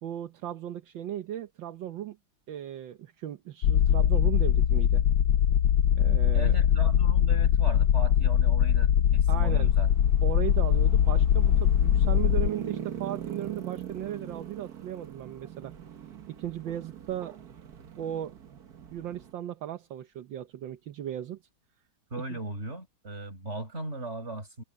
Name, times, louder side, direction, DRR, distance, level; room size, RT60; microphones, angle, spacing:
voice 1, 0.0-2.2 2.5-5.0 6.0-6.6 9.3-9.7 10.2-15.7 16.3-17.4 18.0-18.4 18.9-21.4 22.3-22.4, right 11 dB, 75° right, 1.7 m, -36 dB
sound 1, 3.6-12.5, left 10 dB, 70° left, 1.4 m, -22 dB
voice 2, 6.3-9.9 22.1-24.6, right 2 dB, 35° right, 5.9 m, -38 dB
sound 2, 9.3-19.3, right 9 dB, 55° right, 1.7 m, -42 dB
omnidirectional pair, 2.1 m